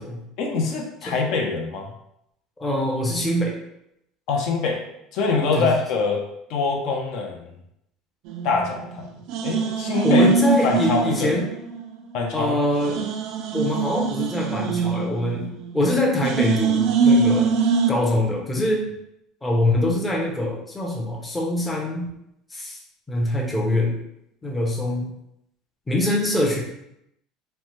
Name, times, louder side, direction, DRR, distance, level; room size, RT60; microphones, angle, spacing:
voice 1, 0.4-1.9 4.3-4.8 5.1-6.2 6.5-7.5 8.4-9.1 9.4-10.3 10.6-11.3 12.1-12.5, left 4 dB, 60° left, 1 dB, 0.5 m, -24 dB
voice 2, 2.6-3.6 5.5-5.7 10.0-11.5 12.3-13.1 13.5-15.5 15.7-17.5 17.9-18.9 19.4-22.1 22.5-22.8 23.1-24.0 24.4-25.1 25.9-26.6, left 1 dB, 10° left, -1 dB, 0.5 m, -24 dB
sound 1, 8.3-9.0 9.3-11.9 12.2-12.3 12.7-15.8 16.2-17.9, right 4 dB, 65° right, 0.3 m, -22 dB
3.1 x 2.1 x 3.0 m, 0.79 s
cardioid pair, 150°, 0 cm